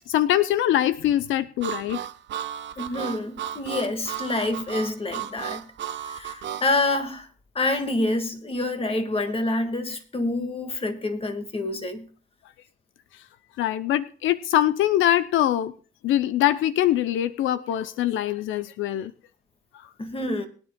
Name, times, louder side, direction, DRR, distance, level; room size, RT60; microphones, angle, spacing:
voice 1, 0.1-2.0 13.1-13.2 13.6-15.7 16.0-19.1 19.7-19.9, left 12 dB, 80° left, 0.5 m, -23 dB
Harmonica, 1.6-6.7, right 10 dB, 65° right, 0.8 m, -34 dB
voice 2, 2.8-5.6 6.0-7.3 7.6-12.0 20.0-20.5, left 2 dB, 30° left, 1.8 m, -27 dB
21.5 x 9.8 x 2.2 m
cardioid pair, 90°, 20 cm